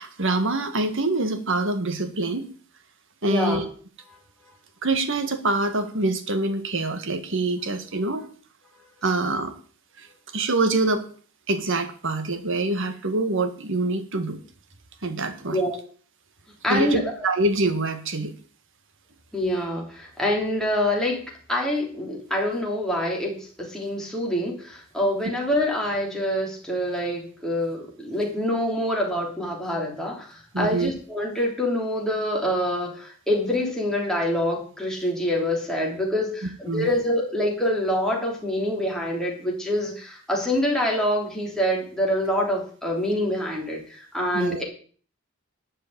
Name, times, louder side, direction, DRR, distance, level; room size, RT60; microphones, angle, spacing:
voice 1, 0.0-2.5 3.2-3.6 4.8-8.2 9.0-9.5 10.0-10.1 10.3-11.0 11.5-14.4 15.0-15.6 16.7-18.3 30.5-30.9 36.7-36.9 44.3-44.6, right 2 dB, 60° right, 9 dB, 1.7 m, -25 dB
voice 2, 3.2-3.6 15.5-15.7 16.6-17.0 19.3-44.6, left 1 dB, 5° left, -2 dB, 3.5 m, -26 dB
12.5 x 5.5 x 8.8 m, 0.44 s
head